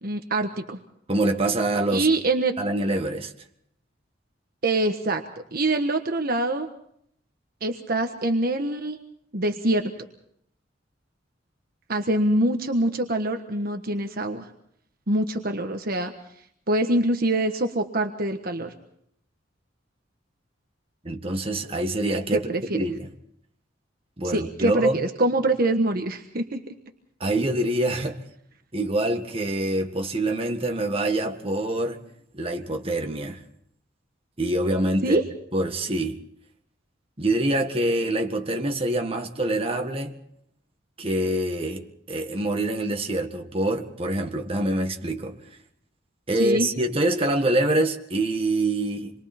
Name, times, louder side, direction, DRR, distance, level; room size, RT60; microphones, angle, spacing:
voice 1, 0.0-0.8 1.9-2.5 4.6-5.2 5.5-6.7 7.6-9.0 9.3-9.9 11.9-14.5 15.1-16.1 16.7-18.7 22.3-22.8 24.2-26.8 35.0-35.2 46.4-46.7, right 1 dB, 50° right, 1.4 m, -24 dB
voice 2, 1.1-2.1 2.6-3.3 21.0-22.5 22.7-23.1 24.2-25.0 27.2-28.2 28.7-32.0 32.3-33.4 34.4-35.2 35.5-36.2 37.2-40.2 41.0-45.4 46.3-49.1, right 1 dB, 30° right, 1.8 m, -25 dB
27.5 x 22.5 x 4.4 m
head